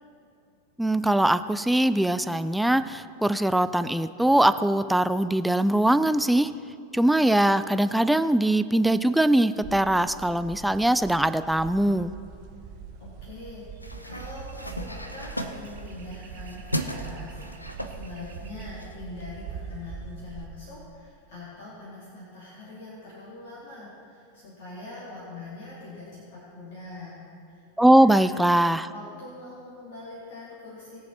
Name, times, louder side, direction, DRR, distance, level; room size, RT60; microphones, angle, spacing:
voice 1, 0.8-6.6 6.9-12.1 27.8-28.9, right 1 dB, 5° right, 12 dB, 0.3 m, -21 dB
sound 1, 9.6-20.4, right 6 dB, 45° right, 1.2 m, -42 dB
voice 2, 13.0-13.6 14.0-28.3 28.9-31.0, left 2 dB, 55° left, -8 dB, 3.3 m, -43 dB
sound 2, 13.8-19.0, equal, 85° left, 0.7 m, -36 dB
20.0 x 7.1 x 4.4 m, 2.5 s
figure-of-eight pair, 90°, 0 cm